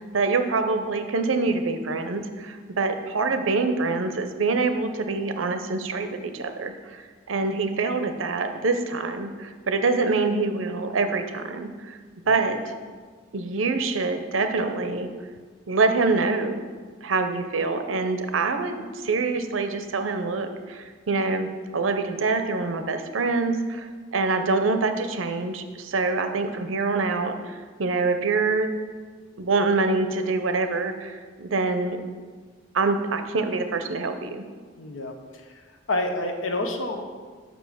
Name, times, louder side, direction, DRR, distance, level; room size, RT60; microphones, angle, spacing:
voice 1, 0.0-12.0 12.3-12.8 13.3-15.1 15.7-16.7 17.0-21.5 21.7-28.7 29.4-32.0 32.7-34.4, right 3 dB, 90° right, 7 dB, 0.7 m, -25 dB
voice 2, 34.8-35.6 35.9-37.1, left 2 dB, 80° left, 3 dB, 0.8 m, -29 dB
6.1 x 5.3 x 6.3 m, 1.5 s
head